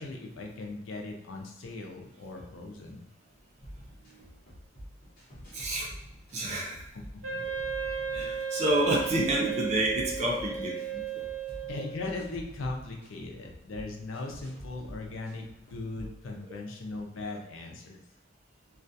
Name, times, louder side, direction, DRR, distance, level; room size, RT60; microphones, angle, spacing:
voice 1, 0.0-3.1 7.1-7.4 11.7-18.0, left 2 dB, 85° left, 2 dB, 0.5 m, -39 dB
sound 1, 3.6-16.3, equal, 50° left, 0.9 m, -47 dB
voice 2, 5.5-5.9 6.3-6.9 8.1-10.8, right 1 dB, 35° right, -2 dB, 0.4 m, -28 dB
Wind instrument woodwind instrument, 7.2-12.3, right 6 dB, 75° right, 0.8 m, -35 dB
2.3 x 2.3 x 2.6 m, 0.86 s
head